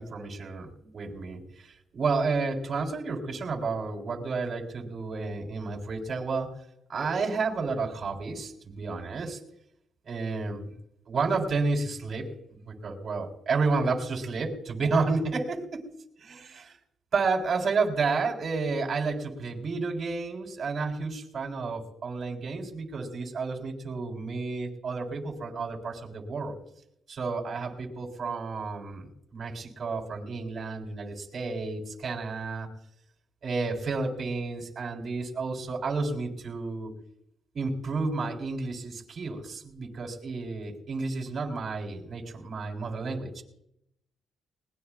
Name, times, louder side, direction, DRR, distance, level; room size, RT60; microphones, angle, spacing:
voice 1, 0.0-1.7 1.9-6.5 6.9-9.4 10.1-10.7 11.1-15.8 16.2-16.8 17.1-26.6 27.1-32.7 33.4-36.9 37.5-43.4, right 4 dB, 50° right, 1 dB, 3.9 m, -31 dB
20.5 x 20.0 x 2.4 m, 0.76 s
cardioid pair, 90°, 0 cm